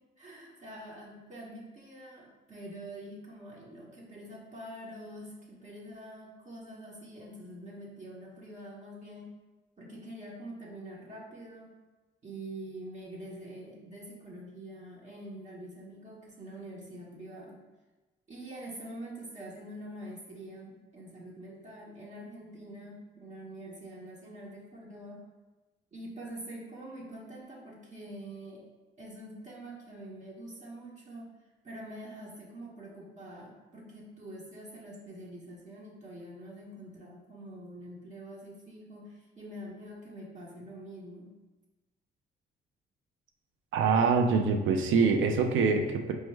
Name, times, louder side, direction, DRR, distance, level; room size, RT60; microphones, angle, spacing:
voice 1, 0.2-9.3 9.8-11.7 12.2-17.6 18.3-25.2 25.9-28.6 29.0-31.3 31.6-41.3, right 1 dB, 35° right, -4 dB, 0.9 m, -45 dB
voice 2, 43.7-46.1, right 5 dB, 80° right, 5 dB, 0.5 m, -25 dB
4.5 x 2.1 x 3.2 m, 1.2 s
cardioid pair, 90°, 20 cm